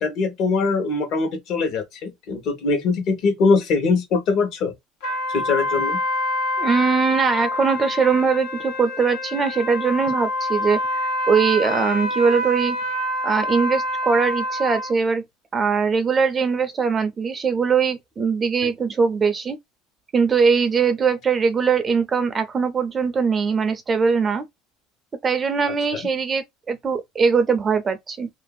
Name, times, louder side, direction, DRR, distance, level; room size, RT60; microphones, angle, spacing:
voice 1, 0.0-4.7 5.3-6.0 18.6-18.7 25.9-26.0, left 4 dB, 50° left, 1.1 m, -22 dB
sound 1, 5.0-14.9, left 1 dB, 80° left, 1.4 m, -26 dB
voice 2, 6.6-10.8 11.3-12.8 13.2-15.2 15.5-19.6 20.1-24.5 25.2-28.3, right 5 dB, 20° right, 0.5 m, -21 dB
2.9 x 2.6 x 2.3 m
cardioid pair, 155°, 0 cm